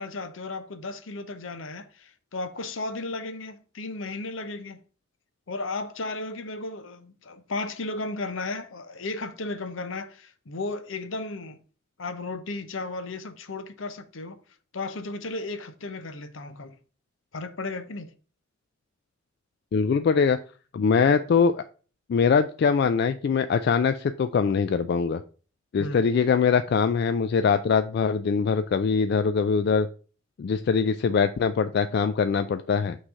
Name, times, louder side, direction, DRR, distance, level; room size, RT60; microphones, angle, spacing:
voice 1, 0.0-4.8 5.5-11.6 12.0-14.4 14.7-16.8 17.3-18.1 25.8-26.2, left 3 dB, 75° left, 0.8 m, -34 dB
voice 2, 19.7-20.4 20.7-21.6 22.1-25.2 25.7-29.9 30.4-33.0, left 5 dB, 55° left, 0.3 m, -22 dB
6.1 x 3.2 x 5.4 m
head